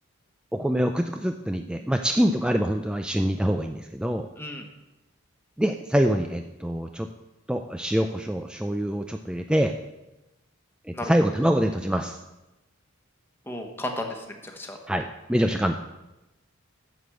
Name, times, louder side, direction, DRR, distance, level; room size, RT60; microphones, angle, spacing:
voice 1, 0.5-4.3 5.6-7.1 7.5-9.8 10.9-12.2 14.9-15.8, equal, 5° right, 5 dB, 0.3 m, -25 dB
voice 2, 13.5-14.8, left 1 dB, 10° left, 2 dB, 1.2 m, -34 dB
8.0 x 6.9 x 7.7 m, 1.0 s
head